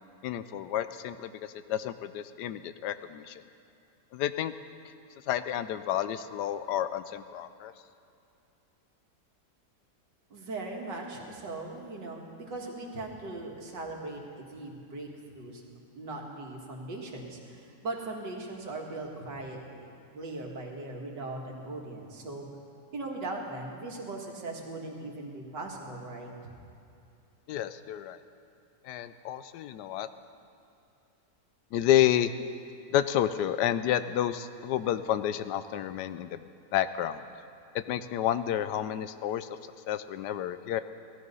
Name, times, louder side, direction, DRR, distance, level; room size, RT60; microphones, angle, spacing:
voice 1, 0.2-3.4 4.1-4.5 5.3-7.7 27.5-28.2 28.8-30.1 31.7-32.3 32.9-36.4 36.7-37.2 37.9-39.5 39.9-40.8, left 11 dB, 80° left, 12 dB, 1.2 m, -30 dB
voice 2, 10.3-15.1 15.3-22.5 22.9-26.3, right 2 dB, 85° right, 0 dB, 2.4 m, -39 dB
17.5 x 13.5 x 5.5 m, 2.6 s
omnidirectional pair, 1.9 m